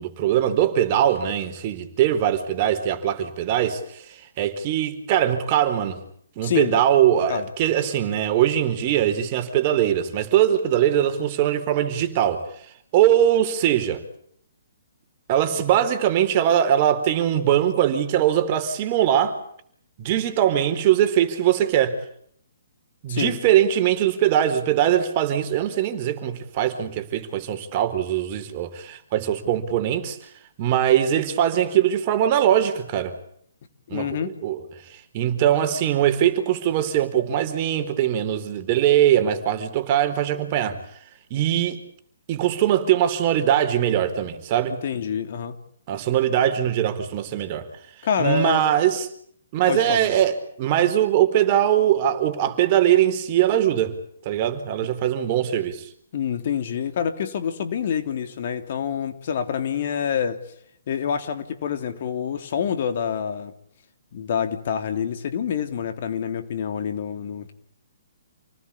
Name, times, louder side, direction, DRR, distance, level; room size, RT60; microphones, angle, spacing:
voice 1, 0.0-6.0 6.4-12.4 12.9-14.0 15.3-19.4 20.0-22.0 23.0-30.2 30.6-33.1 33.9-34.2 34.4-34.6 34.9-40.8 41.3-41.8 42.3-44.8 45.9-47.7 48.2-49.1 49.5-53.9 54.2-55.9, right 11 dB, 40° right, 4.3 m, -21 dB
voice 2, 6.4-6.8 7.3-7.5 23.1-23.4 33.9-34.3 44.7-45.5 48.0-48.7 49.7-50.1 56.1-60.4 60.9-63.5 64.1-67.5, left 8 dB, 55° left, 3.2 m, -27 dB
29.0 x 19.5 x 8.6 m
hypercardioid pair, 135°, 0 cm